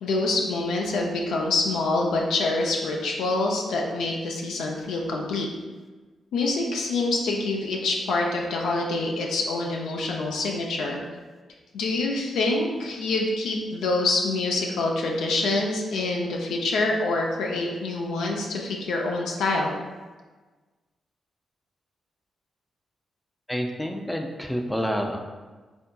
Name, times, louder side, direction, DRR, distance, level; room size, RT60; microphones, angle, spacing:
voice 1, 0.0-5.5 6.3-11.0 11.7-19.7, left 2 dB, 80° left, -1 dB, 0.4 m, -26 dB
voice 2, 23.5-25.2, equal, 5° left, 3 dB, 0.4 m, -28 dB
3.4 x 2.6 x 2.2 m, 1.3 s
hypercardioid pair, 40°, 0 cm